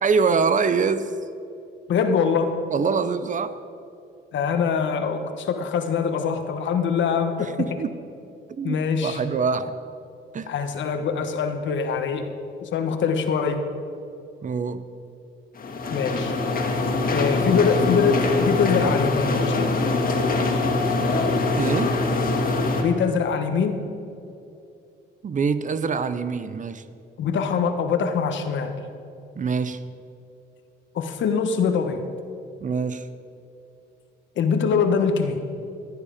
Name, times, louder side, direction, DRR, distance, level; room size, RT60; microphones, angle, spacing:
voice 1, 0.0-1.1 2.7-3.6 7.4-7.9 8.6-9.8 10.3-10.5 14.4-14.8 21.6-22.0 25.2-26.8 29.4-29.8 32.6-33.1, right 5 dB, 40° right, 12 dB, 0.7 m, -24 dB
voice 2, 1.9-2.6 4.3-7.7 8.6-9.2 10.5-12.3 12.6-13.6 15.9-16.3 17.1-19.7 22.8-23.8 27.2-28.7 30.9-32.0 34.4-35.4, left 6 dB, 70° left, 7 dB, 1.3 m, -23 dB
sound 1, 15.6-22.8, left 2 dB, 45° left, 2.1 m, -23 dB
15.5 x 10.0 x 5.0 m, 2.6 s
cardioid pair, 90°, 20 cm